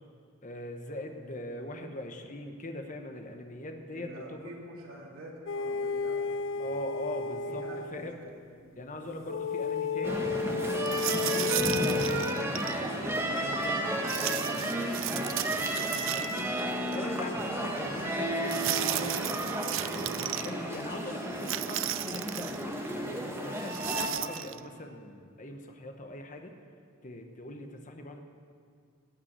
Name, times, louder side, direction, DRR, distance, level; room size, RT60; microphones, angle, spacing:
voice 1, 0.4-4.5 6.6-8.2 8.7-10.4 11.3-16.6 16.9-19.3 19.9-26.5 27.0-28.2, left 1 dB, 35° left, 4 dB, 1.1 m, -41 dB
voice 2, 3.9-6.7 7.5-9.2, right 1 dB, 85° right, -2 dB, 2.8 m, -48 dB
sound 1, 5.5-8.1 9.3-12.6, left 5 dB, 65° left, 0.4 m, -32 dB
sound 2, 10.0-24.1, right 1 dB, 10° right, 1.2 m, -33 dB
sound 3, 10.9-12.8 14.1-16.6 16.9-17.0 18.5-20.5 21.4-22.6 23.6-24.6, right 15 dB, 65° right, 0.4 m, -35 dB
17.5 x 5.9 x 8.9 m, 2.2 s
head